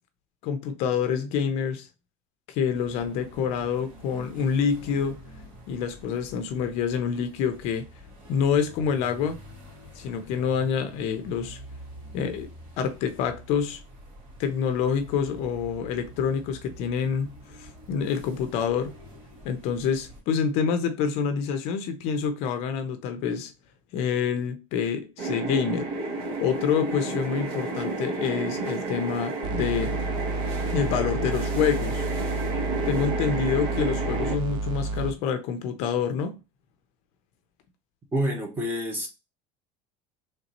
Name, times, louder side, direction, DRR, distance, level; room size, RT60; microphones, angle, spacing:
voice 1, 0.4-1.9 2.5-5.2 5.7-7.9 8.3-9.4 10.0-11.6 12.1-12.5 12.8-13.8 14.4-19.0 19.4-23.5 23.9-30.0 30.7-32.1 32.9-36.4, left 7 dB, 50° left, 0.5 m, -27 dB
sound 1, 2.7-20.2, right 1 dB, 50° right, 2.6 m, -47 dB
sound 2, 25.2-34.4, right 3 dB, 75° right, 1.1 m, -31 dB
sound 3, 29.4-35.2, right 3 dB, 35° right, 0.4 m, -30 dB
voice 2, 38.1-39.1, equal, 15° right, 0.9 m, -27 dB
4.0 x 3.2 x 2.9 m
cardioid pair, 175°, 14 cm